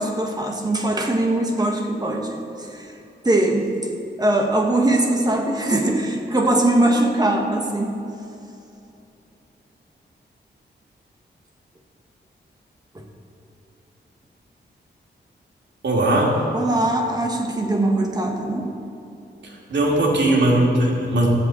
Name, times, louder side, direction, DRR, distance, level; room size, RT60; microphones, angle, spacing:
voice 1, 0.0-2.9 3.2-3.7 4.2-7.9 12.9-13.0 16.5-18.7, right 1 dB, 20° right, 2 dB, 1.4 m, -21 dB
voice 2, 15.8-16.4 19.4-21.3, right 1 dB, 75° right, -3 dB, 2.6 m, -19 dB
13.5 x 5.4 x 8.4 m, 2.7 s
wide cardioid pair, 115°, 19 cm